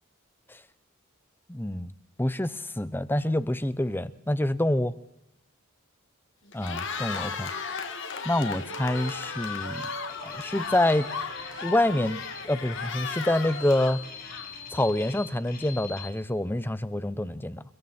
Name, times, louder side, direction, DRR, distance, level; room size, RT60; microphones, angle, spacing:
voice 1, 1.5-1.9 2.2-4.9 6.5-7.5 8.2-9.9 10.2-11.1 11.6-14.0 14.7-17.6, left 1 dB, 10° left, 0.8 m, -27 dB
Cheering, 6.5-14.8, left 6 dB, 65° left, 2.1 m, -35 dB
sound 1, 6.6-10.5 10.8-15.2, right 4 dB, 75° right, 2.5 m, -47 dB
sound 2, 8.9-16.1, left 5 dB, 45° left, 3.3 m, -44 dB
29.0 x 21.5 x 4.4 m
head